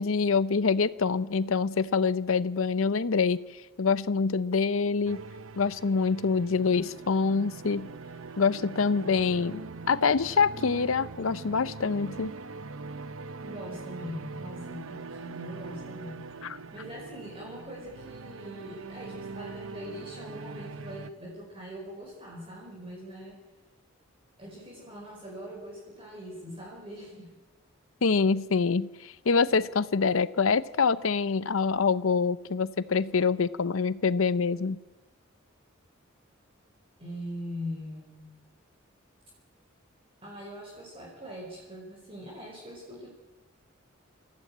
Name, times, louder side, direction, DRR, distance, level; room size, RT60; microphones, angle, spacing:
voice 1, 0.0-5.2 5.6-7.9 8.4-9.6 9.9-12.3 16.4-16.6 28.0-34.8, left 5 dB, 75° left, 15 dB, 0.6 m, -25 dB
sound 1, 5.1-21.1, right 3 dB, 80° right, 0.9 m, -42 dB
voice 2, 13.4-16.3 16.7-23.4 24.4-27.3 37.0-38.3 40.2-43.1, equal, 25° right, -3 dB, 4.9 m, -42 dB
27.5 x 15.0 x 8.7 m, 1.2 s
head